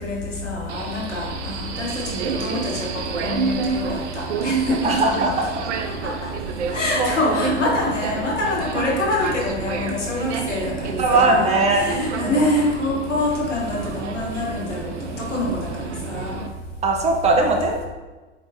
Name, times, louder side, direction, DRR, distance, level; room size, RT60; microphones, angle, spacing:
voice 1, 0.0-5.3 5.8-6.3 6.7-16.4, left 2 dB, 85° left, -2 dB, 1.1 m, -25 dB
Subway metro underground, 0.7-16.5, right 5 dB, 75° right, 0.5 m, -29 dB
voice 2, 4.8-5.3 7.0-7.4 11.0-11.8 16.8-17.8, right 2 dB, 20° right, 1 dB, 0.6 m, -19 dB
4.6 x 3.7 x 2.5 m, 1.2 s
figure-of-eight pair, 85°, 35 cm